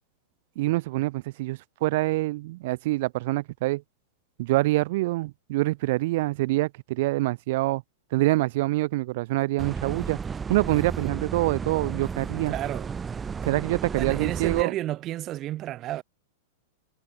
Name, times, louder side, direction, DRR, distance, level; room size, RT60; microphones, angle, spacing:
voice 1, 0.6-3.8 4.4-7.8 8.1-10.2 10.5-12.5 13.4-14.7, right 19 dB, 55° right, 0.8 m, -25 dB
sound 1, 9.6-14.6, right 6 dB, 15° right, 2.3 m, -33 dB
voice 2, 12.5-12.9 14.0-16.0, right 14 dB, 30° right, 4.1 m, -31 dB
hypercardioid pair, 135°, 0 cm